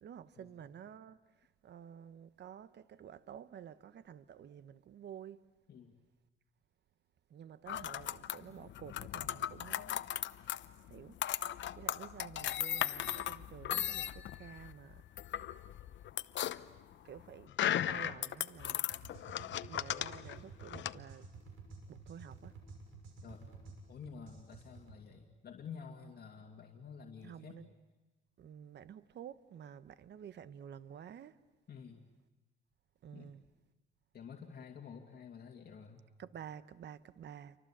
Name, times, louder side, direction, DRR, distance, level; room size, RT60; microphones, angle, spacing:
voice 1, 0.0-5.5 7.3-10.0 10.9-11.2 11.5-15.0 17.0-18.9 19.7-21.3 21.9-22.6 27.2-27.7 28.4-31.4 33.0-33.4 36.2-37.6, right 9 dB, 60° right, 1.0 m, -51 dB
sound 1, 7.7-21.0, left 12 dB, 70° left, 0.8 m, -37 dB
sound 2, 18.9-25.0, right 3 dB, 85° right, 6.6 m, -52 dB
voice 2, 23.2-23.6 23.9-27.6 31.7-32.0 33.1-33.3 34.1-36.0, left 6 dB, 50° left, 2.6 m, -50 dB
29.5 x 24.0 x 7.4 m
cardioid pair, 90°, 20 cm